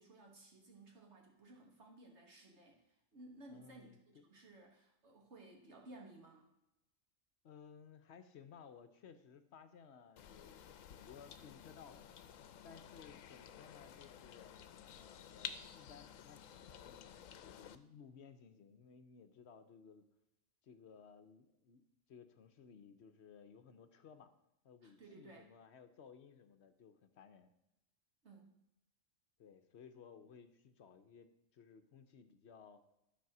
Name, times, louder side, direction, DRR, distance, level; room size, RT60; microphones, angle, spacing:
voice 1, 0.0-6.5 24.8-25.5 28.2-28.6, right 2 dB, 60° right, 1 dB, 1.7 m, -58 dB
voice 2, 3.5-4.2 7.4-12.0 12.6-14.5 14.9-20.1 20.6-24.3 24.6-27.5 29.4-32.8, left 6 dB, 60° left, 9 dB, 0.9 m, -59 dB
sound 1, 10.2-17.8, left 8 dB, 80° left, 1.0 m, -52 dB
12.0 x 4.1 x 5.9 m, 0.90 s
omnidirectional pair, 1.3 m